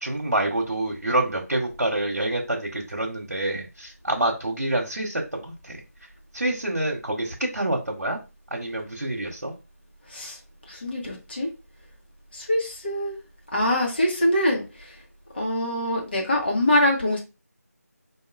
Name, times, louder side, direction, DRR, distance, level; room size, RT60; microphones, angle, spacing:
voice 1, 0.0-5.8 6.3-8.2 8.5-9.5, right 1 dB, 70° right, -1 dB, 1.1 m, -27 dB
voice 2, 10.7-11.5 12.3-13.2 13.5-14.9 15.3-17.2, left 1 dB, 40° left, -1 dB, 1.3 m, -24 dB
4.6 x 2.8 x 2.5 m, 0.28 s
figure-of-eight pair, 170°, 9 cm